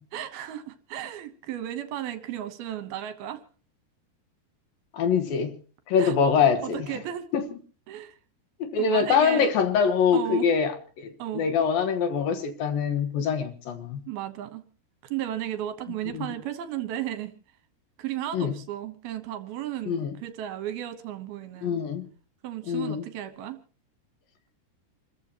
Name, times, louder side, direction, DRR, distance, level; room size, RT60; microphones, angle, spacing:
voice 1, 0.1-3.4 6.0-6.2 6.6-7.3 7.9-8.2 8.8-9.5 10.1-10.5 11.2-11.4 14.1-14.6 15.0-17.3 18.0-21.8 22.4-23.6, right 11 dB, 75° right, 2.8 m, -34 dB
voice 2, 4.9-5.5 5.9-6.9 7.3-7.4 8.6-14.0 16.1-16.3 18.3-18.5 19.9-20.1 21.6-22.0 22.7-23.0, left 6 dB, 70° left, 2.8 m, -24 dB
27.5 x 14.0 x 2.9 m
omnidirectional pair, 4.8 m